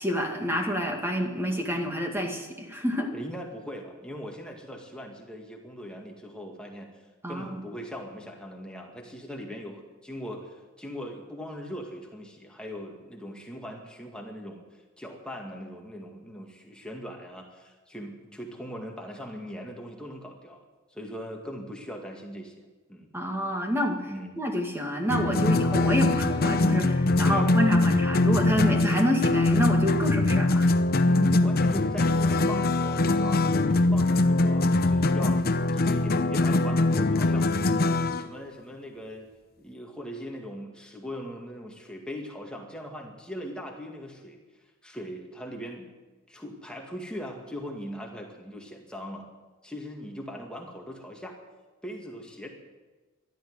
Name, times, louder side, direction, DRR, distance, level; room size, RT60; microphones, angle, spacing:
voice 1, 0.0-3.1 7.2-7.6 23.1-24.0 24.4-30.7, equal, 10° right, 2 dB, 2.1 m, -28 dB
voice 2, 3.1-6.9 7.3-14.6 15.0-20.6 20.9-22.6 22.9-23.1 24.1-24.3 27.2-27.5 31.0-33.5 33.9-35.4 35.7-37.5 38.1-39.3 39.6-44.4 44.8-45.9 46.3-49.3 49.6-51.4 51.8-52.5, equal, 5° left, 0 dB, 2.0 m, -40 dB
sound 1, 25.1-38.2, left 2 dB, 50° left, 0.7 m, -23 dB
14.5 x 12.0 x 8.0 m, 1.2 s
head